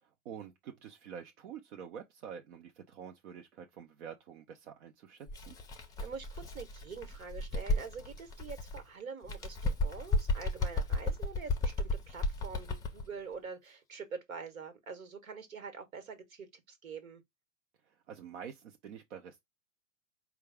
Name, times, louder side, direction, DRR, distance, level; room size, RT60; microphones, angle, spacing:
voice 1, 0.0-5.6 17.8-19.4, right 8 dB, 55° right, 0.8 m, -47 dB
Bird, 5.3-8.8 9.2-13.1, left 2 dB, 10° left, 0.6 m, -34 dB
voice 2, 6.0-17.2, right 5 dB, 70° right, 1.4 m, -45 dB
4.5 x 2.3 x 3.4 m
figure-of-eight pair, 105°, 43 cm